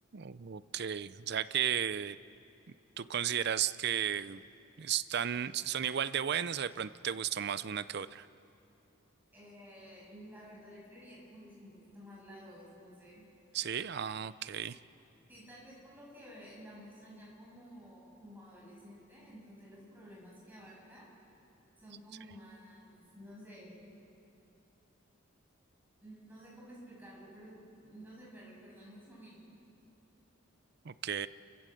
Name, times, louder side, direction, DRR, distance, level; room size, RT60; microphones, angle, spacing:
voice 1, 0.1-2.2 3.0-4.4 4.8-8.3 13.5-14.8 30.8-31.3, right 9 dB, 50° right, 16 dB, 0.5 m, -34 dB
voice 2, 9.3-13.2 15.3-21.1 21.8-24.0 26.0-29.4, equal, 10° right, -5 dB, 7.7 m, -52 dB
29.5 x 15.0 x 7.8 m, 2.8 s
head